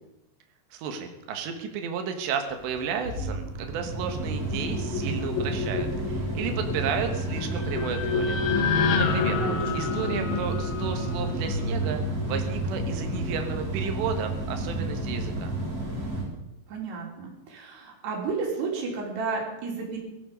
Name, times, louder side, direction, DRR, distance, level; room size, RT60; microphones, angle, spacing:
voice 1, 0.7-8.4 9.0-9.4 9.7-12.0 12.3-15.5, right 6 dB, 90° right, 5 dB, 3.7 m, -33 dB
sound 1, 2.5-16.2, right 2 dB, 35° right, 4.8 m, -31 dB
sound 2, 4.0-13.6, left 3 dB, 85° left, 4.3 m, -32 dB
sound 3, 7.1-11.4, left 6 dB, 65° left, 2.7 m, -30 dB
voice 2, 9.4-9.9 16.7-20.0, right 4 dB, 70° right, -1 dB, 5.3 m, -32 dB
18.0 x 13.5 x 5.3 m, 0.93 s
omnidirectional pair, 4.9 m